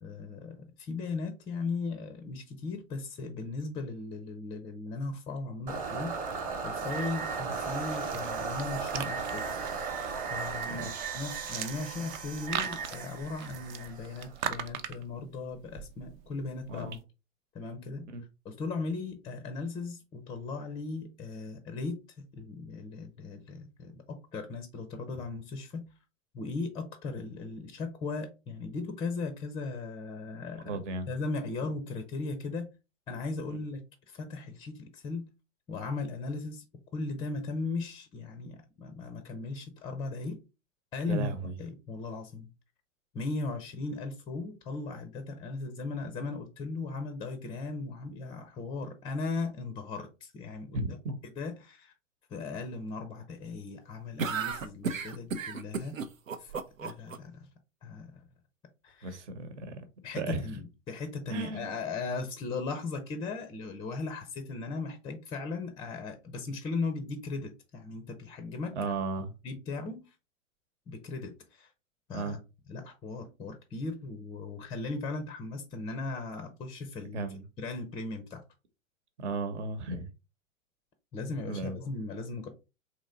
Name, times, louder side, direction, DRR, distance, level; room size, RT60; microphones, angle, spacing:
voice 1, 0.0-9.4 10.3-10.8 11.1-16.9 17.5-18.1 18.4-22.0 22.3-25.8 26.3-30.7 31.1-32.7 33.1-33.8 34.1-35.2 35.7-36.6 36.9-40.4 40.9-41.3 41.6-42.5 43.1-50.8 51.4-51.9 52.3-56.0 56.4-56.5 56.8-57.5 57.8-58.2 58.8-59.2 60.0-68.7 69.4-70.0 70.9-71.7 72.1-72.4 72.7-77.2 77.6-78.4 81.1-82.5, left 3 dB, 15° left, 0.5 m, -37 dB
sound 1, 5.7-14.7, right 5 dB, 20° right, 1.0 m, -36 dB
sound 2, 7.9-17.0, right 9 dB, 40° right, 0.5 m, -41 dB
voice 2, 10.6-11.1 16.7-17.0 18.1-18.2 30.6-31.1 31.6-31.7 33.5-33.6 41.1-41.6 50.7-51.1 59.0-60.5 61.3-61.7 68.7-69.3 72.1-72.4 77.1-77.5 79.2-80.1 81.2-81.8, right 3 dB, 60° right, 1.1 m, -35 dB
sound 3, 54.2-57.2, right 5 dB, 85° right, 0.6 m, -33 dB
4.1 x 3.0 x 3.7 m
figure-of-eight pair, 100°, 39 cm